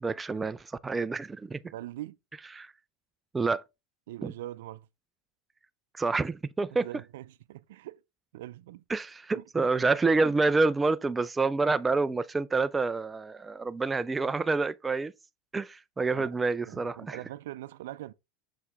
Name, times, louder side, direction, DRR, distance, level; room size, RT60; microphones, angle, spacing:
voice 1, 0.0-1.6 2.5-2.7 3.3-3.6 4.2-4.3 5.9-6.9 8.9-15.1 15.5-17.2, right 3 dB, 10° right, 0.3 m, -28 dB
voice 2, 1.7-2.2 4.1-4.9 6.7-8.0 8.3-8.8 9.3-9.4 16.1-16.4 16.7-18.1, right 14 dB, 80° right, 0.4 m, -42 dB
6.6 x 4.9 x 3.5 m
supercardioid pair, 145°, 0 cm